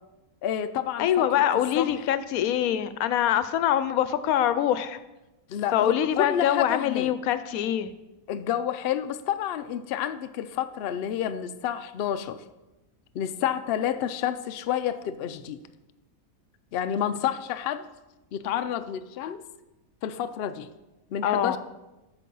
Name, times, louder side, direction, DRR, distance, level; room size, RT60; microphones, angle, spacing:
voice 1, 0.4-1.4 1.8-1.9 5.5-7.1 8.3-12.4 13.1-15.6 16.7-17.9 18.3-19.4 20.0-20.7 21.1-21.6, left 10 dB, 65° left, 10 dB, 0.6 m, -29 dB
voice 2, 1.0-5.0 5.7-7.9 21.2-21.6, left 10 dB, 85° left, 12 dB, 1.0 m, -24 dB
8.3 x 6.0 x 5.4 m, 1.0 s
omnidirectional pair, 1.5 m